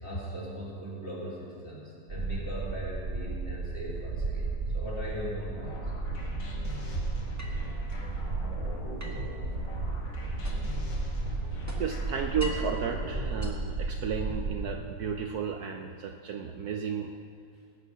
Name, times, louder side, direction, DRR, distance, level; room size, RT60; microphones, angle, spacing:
voice 1, 0.0-4.5 4.7-5.9, equal, 35° left, -7 dB, 4.0 m, -39 dB
sound 1, 2.1-14.7, right 3 dB, 40° right, 1.3 m, -34 dB
sound 2, 5.5-13.5, left 2 dB, 70° left, 2.4 m, -43 dB
sound 3, 7.4-8.1 9.0-10.9 11.2-12.8 13.2-14.3, equal, 10° right, 1.5 m, -44 dB
voice 2, 11.8-17.1, right 6 dB, 65° right, 4 dB, 1.1 m, -33 dB
18.5 x 8.7 x 5.7 m, 2.2 s
omnidirectional pair, 2.0 m